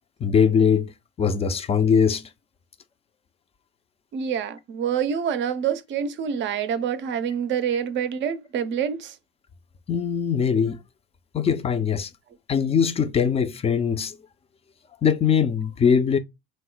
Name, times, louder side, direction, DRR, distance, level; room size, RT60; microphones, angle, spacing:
voice 1, 0.2-0.9 1.2-2.3 9.9-10.8 11.3-12.1 12.5-14.2 15.0-16.2, left 7 dB, 20° left, 0.5 m, -21 dB
voice 2, 4.1-9.2, right 8 dB, 40° right, 0.6 m, -26 dB
3.1 x 2.0 x 3.9 m
hypercardioid pair, 70°, 29 cm